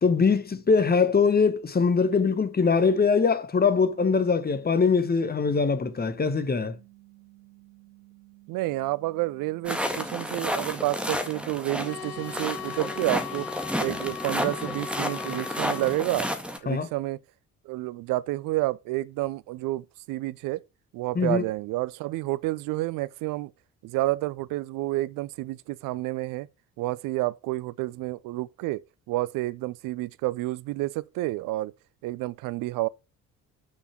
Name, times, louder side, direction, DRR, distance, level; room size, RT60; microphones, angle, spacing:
voice 1, 0.0-6.8 16.7-16.9 21.1-21.4, left 5 dB, 20° left, 1.3 m, -22 dB
sound 1, 3.8-13.5, right 23 dB, 75° right, 3.1 m, -55 dB
voice 2, 8.5-13.5 13.8-16.3 16.6-17.2 17.7-20.6 20.9-23.5 23.8-26.5 26.8-28.8 29.1-31.7 32.0-32.9, right 18 dB, 50° right, 0.6 m, -29 dB
sound 2, 9.6-16.6, equal, ahead, 1.9 m, -31 dB
sound 3, 11.8-16.0, left 7 dB, 85° left, 0.6 m, -38 dB
6.4 x 5.6 x 5.9 m
figure-of-eight pair, 55°, 44 cm